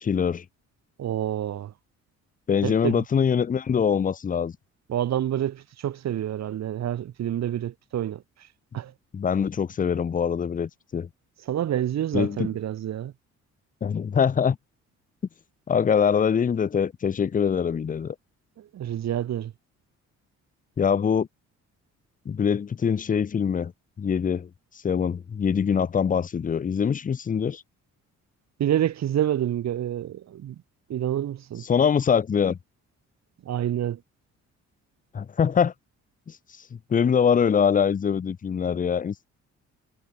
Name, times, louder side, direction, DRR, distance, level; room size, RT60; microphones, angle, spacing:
voice 1, 0.0-0.4 2.5-4.5 9.1-11.1 12.1-12.5 13.8-14.6 15.7-18.2 20.8-21.3 22.3-23.7 24.0-24.5 24.8-27.6 31.6-32.6 35.1-35.7 36.3-36.4 36.9-39.3, left 7 dB, 25° left, 0.6 m, -23 dB
voice 2, 1.0-1.7 2.6-3.0 4.9-8.2 8.7-8.9 11.5-13.1 18.6-19.5 28.6-30.5 30.9-31.6 33.4-34.0, right 11 dB, 60° right, 1.4 m, -28 dB
cardioid pair, 90°, 30 cm